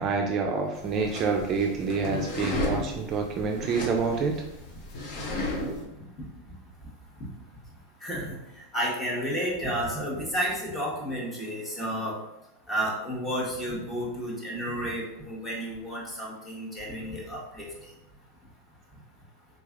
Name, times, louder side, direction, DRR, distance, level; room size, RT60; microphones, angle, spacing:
voice 1, 0.0-4.4, right 5 dB, 35° right, 2 dB, 0.4 m, -27 dB
sound 1, 0.8-5.8, left 1 dB, 55° left, 0.8 m, -34 dB
voice 2, 8.0-8.4 8.7-12.1 12.7-17.6, equal, 15° left, -5 dB, 1.2 m, -31 dB
3.7 x 3.1 x 2.4 m, 0.89 s
supercardioid pair, 130°, 0 cm